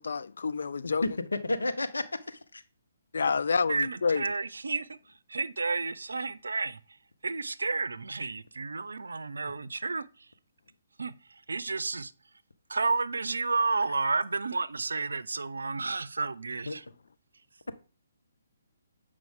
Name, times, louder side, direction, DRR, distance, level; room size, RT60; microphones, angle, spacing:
voice 1, 0.0-1.0 3.1-4.3, left 5 dB, 70° left, 0.4 m, -28 dB
voice 2, 1.0-2.6 16.7-16.8, left 2 dB, 85° left, 0.8 m, -31 dB
voice 3, 3.7-5.0 5.3-6.8 7.2-10.0 11.0-11.1 11.5-12.1 12.7-16.8, right 4 dB, 80° right, 0.5 m, -31 dB
7.5 x 5.0 x 3.6 m
figure-of-eight pair, 140°, 0 cm